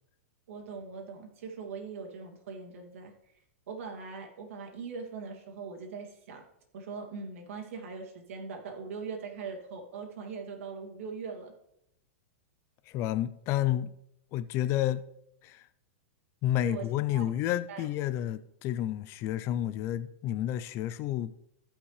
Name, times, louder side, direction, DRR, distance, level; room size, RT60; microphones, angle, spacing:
voice 1, 0.5-3.1 3.7-6.4 6.7-11.5 16.6-16.9 17.1-17.3 17.7-17.9, right 5 dB, 70° right, 2.5 m, -41 dB
voice 2, 12.9-13.9 14.3-15.0 15.4-15.6 16.4-21.3, left 12 dB, 35° left, 0.4 m, -30 dB
16.0 x 5.8 x 3.2 m
hypercardioid pair, 140°, 8 cm